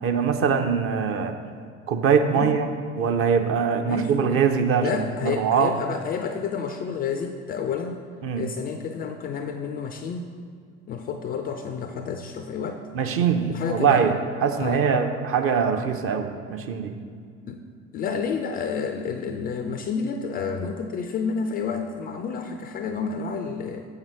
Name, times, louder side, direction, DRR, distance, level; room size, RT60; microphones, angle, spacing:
voice 1, 0.0-1.4 1.9-2.7 3.0-5.0 5.3-5.7 8.2-8.4 12.9-14.1 14.4-16.9, right 6 dB, 35° right, 6 dB, 0.6 m, -22 dB
voice 2, 3.8-4.1 4.8-8.0 8.3-10.3 10.9-12.8 13.5-14.1 14.6-14.9 17.5-17.6 17.9-23.9, left 6 dB, 25° left, 6 dB, 0.3 m, -30 dB
7.4 x 5.6 x 4.6 m, 2.2 s
figure-of-eight pair, 65°, 38 cm